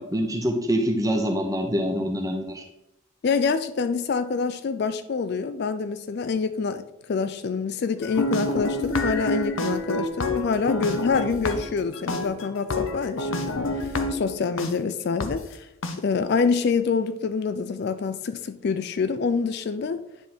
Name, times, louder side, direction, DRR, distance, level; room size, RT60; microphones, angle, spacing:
voice 1, 0.0-2.6, equal, 15° right, 0.8 m, -25 dB
voice 2, 3.2-15.7 16.0-20.0, left 5 dB, 50° left, 0.3 m, -26 dB
sound 1, 8.0-14.7 15.2-15.3 15.8-15.9, left 2 dB, 70° left, 0.8 m, -28 dB
9.7 x 3.6 x 4.4 m
head